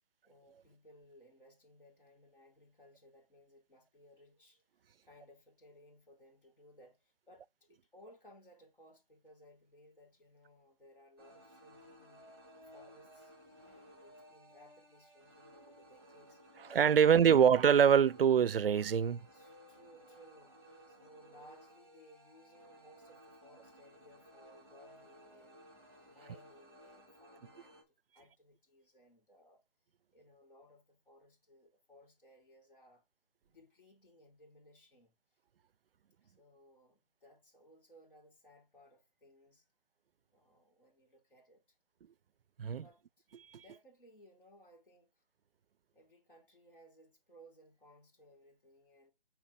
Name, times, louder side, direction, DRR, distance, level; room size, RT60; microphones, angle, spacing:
voice 1, 0.2-4.6 5.0-12.3 12.6-13.3 13.6-16.4 19.3-25.7 26.1-29.6 30.1-33.0 33.4-35.1 36.2-39.7 40.3-41.8 42.8-43.3 43.5-45.2 45.9-49.1, equal, 65° left, 4.5 m, -62 dB
sound 1, 11.2-27.8, equal, 5° left, 1.4 m, -58 dB
voice 2, 16.6-19.2 42.6-42.8 43.5-43.6, right 8 dB, 75° right, 0.5 m, -25 dB
7.4 x 4.6 x 3.7 m
figure-of-eight pair, 165°, 29 cm